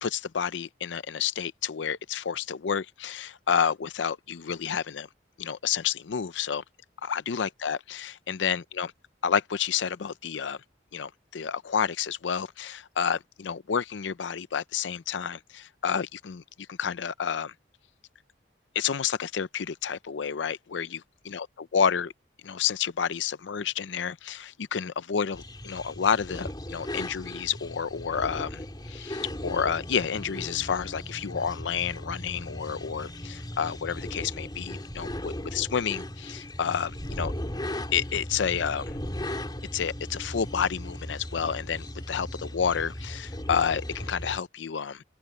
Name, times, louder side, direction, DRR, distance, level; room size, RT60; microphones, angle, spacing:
voice 1, 0.0-5.1 5.4-6.6 7.0-8.9 9.2-10.6 10.9-16.4 16.7-17.5 18.7-21.5 21.7-22.1 22.4-37.3 37.9-38.8 39.7-45.0, left 7 dB, 85° left, 0.5 m, -30 dB
sound 1, 25.3-44.4, left 1 dB, 25° left, 3.0 m, -37 dB
open air
head